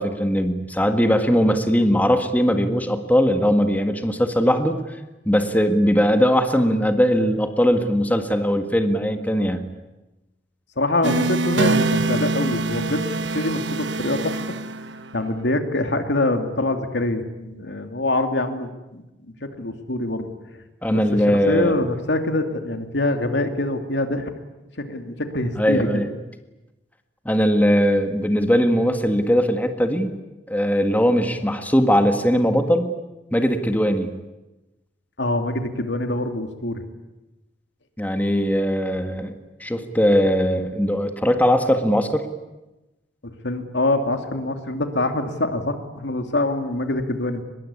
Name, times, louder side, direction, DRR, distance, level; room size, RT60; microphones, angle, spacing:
voice 1, 0.0-4.8 5.3-9.7 20.8-21.8 25.6-26.1 27.3-30.1 30.5-32.9 33.3-34.2 38.0-39.3 39.6-42.2, equal, 10° left, 6 dB, 1.7 m, -20 dB
voice 2, 10.8-14.4 15.1-19.0 19.4-20.3 20.9-24.3 24.8-26.0 35.2-36.8 43.2-47.4, left 2 dB, 80° left, 6 dB, 2.7 m, -25 dB
sound 1, 11.0-15.3, right 3 dB, 90° right, 1.3 m, -24 dB
23.5 x 21.5 x 9.8 m, 1.0 s
head